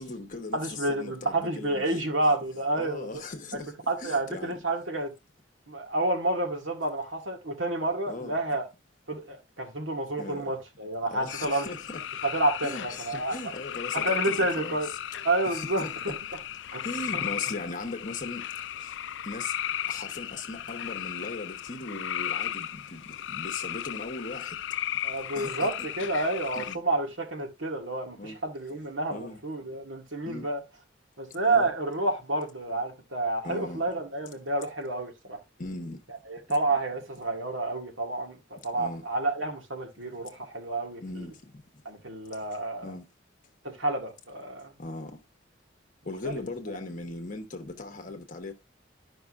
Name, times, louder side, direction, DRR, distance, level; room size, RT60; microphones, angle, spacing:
voice 1, 0.0-2.0 2.7-4.5 8.1-8.4 10.2-10.5 11.1-12.3 12.6-15.0 15.5-16.4 16.8-19.0 19.2-19.6 19.8-24.6 25.3-25.9 26.5-26.8 28.2-28.4 29.1-29.4 30.2-30.5 31.5-31.7 33.4-33.8 35.6-36.0 36.5-36.6 38.7-39.1 40.2-40.3 41.0-41.6 42.8-43.1 44.8-45.2 46.0-48.5, left 3 dB, 40° left, 1.0 m, -39 dB
voice 2, 0.5-3.1 3.9-5.1 5.7-8.6 9.1-11.7 12.2-13.3 13.9-14.9 15.2-16.1 16.7-16.9 17.1-17.2 25.0-30.6 31.2-35.4 36.3-41.3 41.9-42.9 43.6-44.7 46.2-46.4, right 2 dB, 85° right, 2.0 m, -29 dB
sound 1, 11.3-26.8, left 11 dB, 65° left, 0.4 m, -35 dB
11.0 x 5.4 x 2.5 m
head